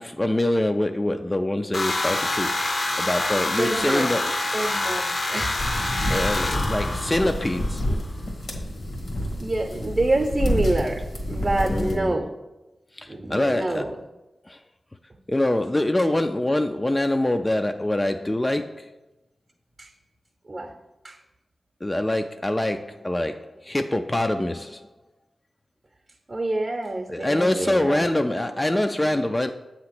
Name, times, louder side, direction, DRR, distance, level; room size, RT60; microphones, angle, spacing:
voice 1, 0.0-2.6 3.0-4.3 6.1-7.9 11.6-12.2 12.9-13.9 14.5-14.6 15.3-18.9 21.8-24.9 27.1-29.5, left 1 dB, 20° left, 0.3 m, -24 dB
sound 1, 1.7-7.9, left 2 dB, 50° left, 0.7 m, -27 dB
voice 2, 3.5-4.1 4.5-5.8 9.4-12.3 13.1-13.9 19.8-19.9 20.5-20.7 21.0-21.2 26.3-28.1, right 2 dB, 40° right, 0.7 m, -27 dB
sound 2, 5.6-12.0, equal, 75° left, 1.3 m, -28 dB
7.4 x 2.9 x 5.9 m
cardioid pair, 55°, 0 cm